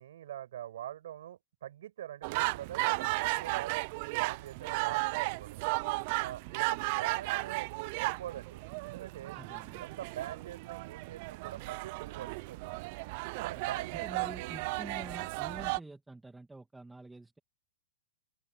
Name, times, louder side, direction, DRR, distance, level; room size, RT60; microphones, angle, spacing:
voice 1, 0.0-3.7 4.1-5.7 6.2-9.4 9.7-12.7 13.4-14.5, right 12 dB, 65° right, 6.1 m, -44 dB
sound 1, 2.2-15.8, right 25 dB, 40° right, 0.3 m, -35 dB
voice 2, 9.3-9.9 14.0-17.4, right 2 dB, 5° right, 2.0 m, -47 dB
open air
hypercardioid pair, 165°, 0 cm